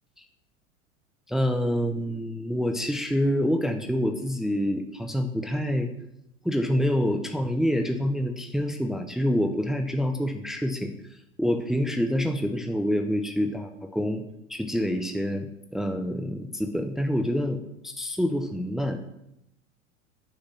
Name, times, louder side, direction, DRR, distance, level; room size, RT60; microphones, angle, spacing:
voice 1, 1.3-5.9 6.4-10.9 11.4-14.2 14.5-15.5 15.7-19.0, equal, ahead, 5 dB, 0.9 m, -27 dB
9.2 x 6.4 x 7.6 m, 0.82 s
figure-of-eight pair, 80°, 39 cm